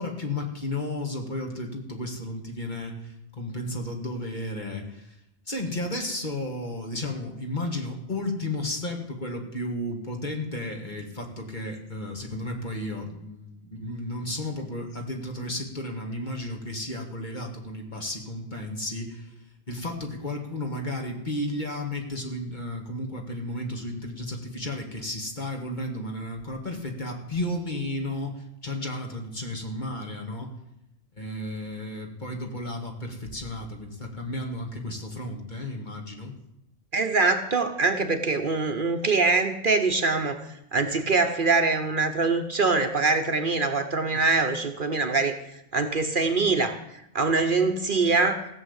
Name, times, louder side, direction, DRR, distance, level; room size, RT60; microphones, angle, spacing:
voice 1, 0.0-5.2 5.5-19.3 19.7-30.5 31.2-36.3, left 1 dB, 40° left, 2 dB, 2.2 m, -33 dB
voice 2, 36.9-40.4 40.7-45.4 45.7-46.8 47.1-48.5, right 3 dB, 50° right, 7 dB, 1.1 m, -23 dB
16.0 x 7.2 x 8.1 m, 0.82 s
omnidirectional pair, 1.2 m